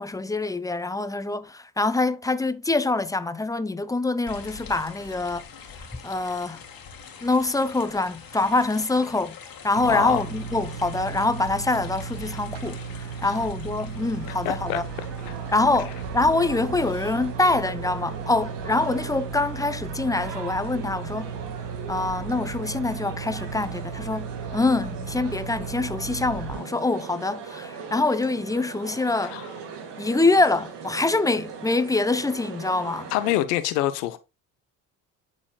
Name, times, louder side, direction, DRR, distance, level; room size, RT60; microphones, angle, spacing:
voice 1, 0.0-5.5 6.0-6.6 7.2-9.3 9.6-14.8 15.5-21.3 21.9-29.4 30.0-33.1, left 2 dB, 10° left, 0.5 m, -25 dB
sound 1, 4.3-16.1, left 6 dB, 45° left, 1.9 m, -45 dB
sound 2, 9.7-26.6, right 6 dB, 90° right, 0.9 m, -35 dB
voice 2, 9.9-10.2 13.2-13.4 14.3-14.8 15.3-15.4 29.2-29.5 33.1-34.2, left 15 dB, 80° left, 0.8 m, -26 dB
sound 3, 13.9-33.4, right 6 dB, 60° right, 1.8 m, -40 dB
10.5 x 4.2 x 2.3 m
hypercardioid pair, 55°, 47 cm